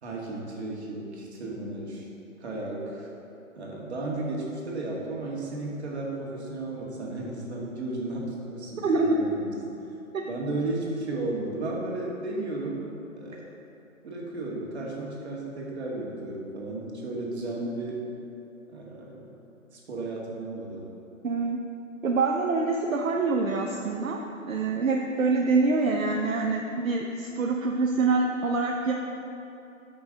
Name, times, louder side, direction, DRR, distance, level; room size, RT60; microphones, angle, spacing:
voice 1, 0.0-2.1 2.4-3.1 3.5-9.5 10.3-12.8 13.1-13.5 14.0-18.0 18.7-19.3 19.7-20.9, right 2 dB, 50° right, -3 dB, 2.1 m, -34 dB
voice 2, 8.8-9.2 10.1-10.2 21.2-21.6 22.0-28.9, right 3 dB, 70° right, 1 dB, 0.8 m, -25 dB
11.0 x 6.1 x 3.8 m, 2.9 s
figure-of-eight pair, 140°, 41 cm